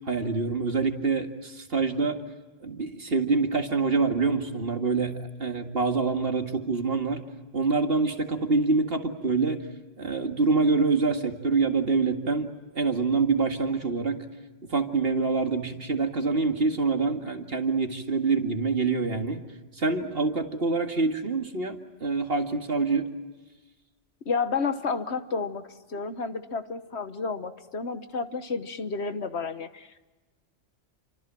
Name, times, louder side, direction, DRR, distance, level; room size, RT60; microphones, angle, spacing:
voice 1, 0.1-2.2 2.6-7.2 7.5-9.6 10.0-14.2 14.7-19.4 19.8-23.1, right 4 dB, 55° right, 5 dB, 2.2 m, -26 dB
voice 2, 24.2-30.1, left 4 dB, 65° left, 10 dB, 1.5 m, -31 dB
29.0 x 25.0 x 7.6 m, 1.2 s
omnidirectional pair, 1.2 m